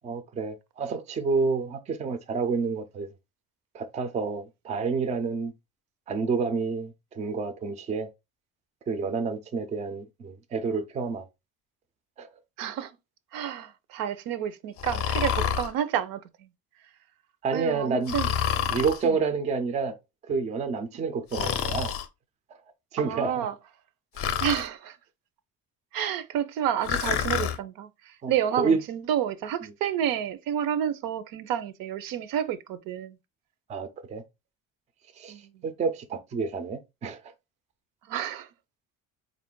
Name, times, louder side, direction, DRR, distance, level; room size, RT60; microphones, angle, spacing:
voice 1, 0.0-3.1 3.7-5.5 6.1-8.1 8.9-11.2 12.2-12.3 17.4-18.1 18.7-19.9 20.3-21.9 22.9-23.5 28.2-28.8 33.7-34.2 35.2-35.3 35.6-37.2, right 4 dB, 20° right, 0.3 m, -29 dB
voice 2, 12.6-12.9 13.3-16.5 17.5-18.3 19.0-19.2 20.9-21.0 23.0-23.5 24.4-25.0 25.9-33.2 35.3-35.5 38.1-38.5, right 9 dB, 80° right, 0.6 m, -30 dB
Breathing, 14.8-15.7 18.1-19.0 21.3-22.1 24.2-24.7 26.8-27.6, left 8 dB, 40° left, 0.5 m, -28 dB
4.4 x 2.4 x 3.6 m
cardioid pair, 175°, 34 cm